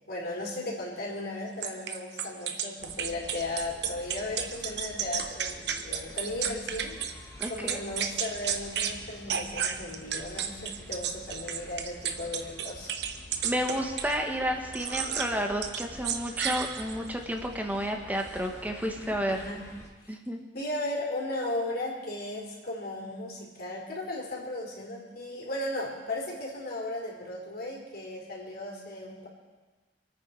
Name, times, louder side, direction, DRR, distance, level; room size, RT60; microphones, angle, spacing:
voice 1, 0.0-12.9 19.2-19.6 20.0-20.2 20.5-29.3, left 1 dB, 60° left, -2 dB, 4.2 m, -36 dB
sound 1, 1.6-7.1 7.4-9.0 9.3-14.2 14.7-15.3 15.6-17.1, right 8 dB, 70° right, 1.1 m, -32 dB
sound 2, 2.8-19.9, left 1 dB, 15° left, 2.0 m, -48 dB
voice 2, 7.4-7.8 13.4-19.4 20.1-20.4, equal, 10° right, 3 dB, 1.7 m, -31 dB
27.0 x 9.3 x 4.9 m, 1.3 s
head